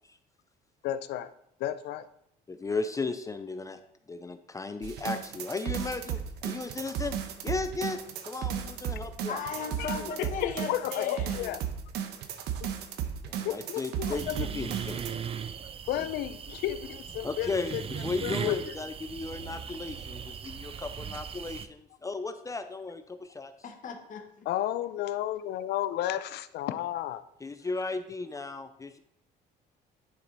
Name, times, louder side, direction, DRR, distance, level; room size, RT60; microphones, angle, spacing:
voice 1, 0.8-1.3 1.6-2.1 9.8-11.6 13.4-14.5 15.9-17.8 18.2-18.6 24.5-27.2, left 13 dB, 75° left, 13 dB, 0.5 m, -32 dB
voice 2, 2.5-3.8 4.1-7.2 7.4-8.0 8.3-10.3 13.3-15.0 16.0-16.1 17.2-23.5 27.4-29.0, left 3 dB, 20° left, 9 dB, 0.5 m, -36 dB
sound 1, 4.8-15.1, right 9 dB, 75° right, 0.9 m, -35 dB
voice 3, 9.3-11.6 23.6-24.5, left 5 dB, 50° left, 4 dB, 1.4 m, -37 dB
sound 2, 14.1-21.7, right 7 dB, 35° right, 0.5 m, -38 dB
10.5 x 4.6 x 4.0 m, 0.76 s
cardioid pair, 110°, 17 cm